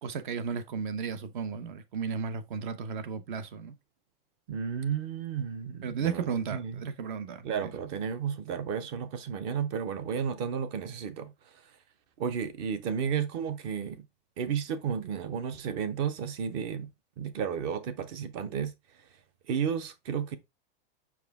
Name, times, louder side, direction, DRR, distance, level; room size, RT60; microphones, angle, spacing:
voice 1, 0.0-3.8 5.8-7.7, right 6 dB, 55° right, 1.0 m, -34 dB
voice 2, 4.5-6.8 7.4-11.6 12.2-14.1 14.4-16.9 17.2-18.7 19.5-20.4, right 7 dB, 20° right, 0.5 m, -33 dB
6.1 x 4.8 x 3.4 m
supercardioid pair, 180°, 30 cm